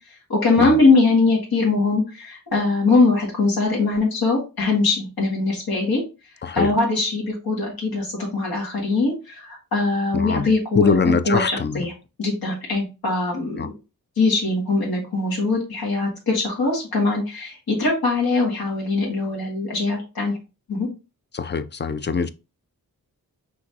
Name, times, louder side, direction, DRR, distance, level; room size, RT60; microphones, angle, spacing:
voice 1, 0.3-6.0 6.5-11.0 11.3-11.9 12.2-13.7 14.2-20.3 20.7-20.9, left 3 dB, 75° left, 2.0 m, -21 dB
voice 2, 6.4-6.7 10.1-10.5 10.7-11.9 13.6-13.7 21.3-22.3, left 5 dB, 30° left, 0.4 m, -22 dB
5.7 x 3.1 x 2.8 m
wide cardioid pair, 75°, 36 cm